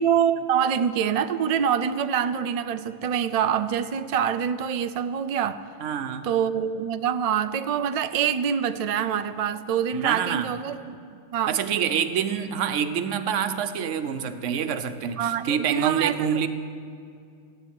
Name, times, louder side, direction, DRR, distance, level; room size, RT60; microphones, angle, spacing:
voice 1, 0.0-5.6 6.2-11.0 11.3-11.6 15.2-16.4, right 8 dB, 65° right, 11 dB, 0.3 m, -25 dB
voice 2, 5.8-6.3 9.9-10.5 11.5-16.5, right 8 dB, 85° right, 10 dB, 1.1 m, -26 dB
14.5 x 7.9 x 9.4 m, 2.4 s
omnidirectional pair, 1.2 m